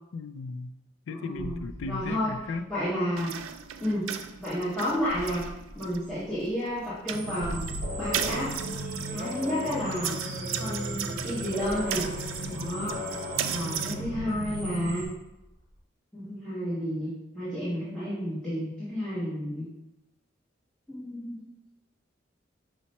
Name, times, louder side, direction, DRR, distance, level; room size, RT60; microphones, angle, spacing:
voice 1, 0.1-0.7 1.1-2.7 12.7-13.0, left 4 dB, 85° left, 9 dB, 0.3 m, -36 dB
voice 2, 1.1-2.4 2.7-3.3 3.8-4.1 4.4-5.5 5.7-7.6 8.0-8.5 9.1-10.2 10.6-12.1 12.5-13.0 13.5-15.0 16.1-19.7 20.9-21.3, equal, 5° left, -11 dB, 1.1 m, -31 dB
sound 1, 1.3-15.8, equal, 50° left, 0.8 m, -45 dB
sound 2, 3.2-13.9, right 9 dB, 90° right, 0.3 m, -37 dB
sound 3, 7.1-15.1, equal, 45° right, 0.8 m, -35 dB
5.9 x 2.1 x 4.1 m, 0.93 s
head